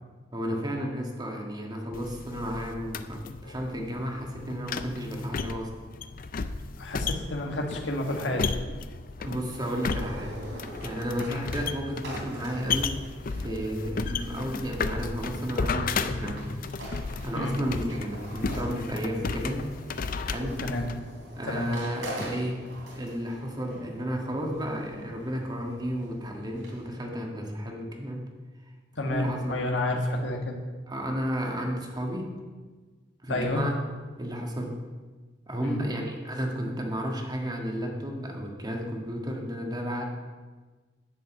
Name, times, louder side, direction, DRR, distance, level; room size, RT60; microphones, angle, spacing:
voice 1, 0.3-5.7 8.3-8.4 9.2-10.4 10.8-12.9 13.4-16.4 17.2-19.6 20.2-20.6 21.3-22.6 22.9-28.3 29.1-29.6 30.9-32.3 33.2-33.8 34.2-34.7 35.5-40.0, equal, 20° right, 1 dB, 1.6 m, -32 dB
sound 1, 1.9-21.0, left 4 dB, 50° left, 0.5 m, -34 dB
voice 2, 6.8-8.4 11.3-11.5 17.3-17.5 20.6-20.9 21.5-21.7 29.0-30.6 33.3-33.6 35.6-35.8, left 1 dB, 80° left, 2 dB, 1.7 m, -30 dB
sound 2, 9.8-26.9, right 1 dB, 85° right, 3.1 m, -44 dB
10.5 x 5.3 x 7.7 m, 1.4 s
head